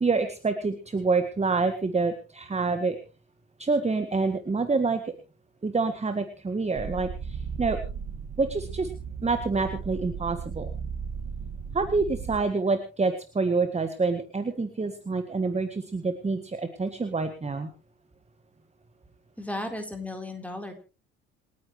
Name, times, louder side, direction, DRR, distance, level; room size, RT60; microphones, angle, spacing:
voice 1, 0.0-3.0 3.6-5.0 5.6-7.8 8.4-8.9 9.2-10.7 11.7-17.7, right 4 dB, 15° right, 9 dB, 1.7 m, -27 dB
sound 1, 6.7-12.4, right 6 dB, 35° right, 1.7 m, -36 dB
voice 2, 19.4-20.7, left 1 dB, 5° left, 5 dB, 4.0 m, -35 dB
28.0 x 9.7 x 3.2 m, 0.33 s
figure-of-eight pair, 60°, 42 cm